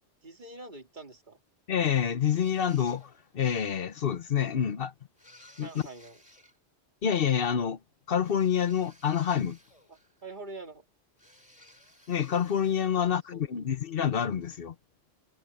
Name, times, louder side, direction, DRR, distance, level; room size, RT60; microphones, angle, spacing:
voice 1, 0.2-1.4 5.6-6.2 9.9-10.8 12.9-13.0 13.3-13.4, right 2 dB, 45° right, 2.6 m, -45 dB
voice 2, 1.7-4.9 5.6-5.7 7.0-7.8 8.1-9.6 12.1-14.7, left 8 dB, 55° left, 1.0 m, -27 dB
sound 1, 2.2-3.4 5.2-6.6 8.2-10.2 11.2-13.2, left 1 dB, 30° left, 5.3 m, -57 dB
omnidirectional pair, 1.1 m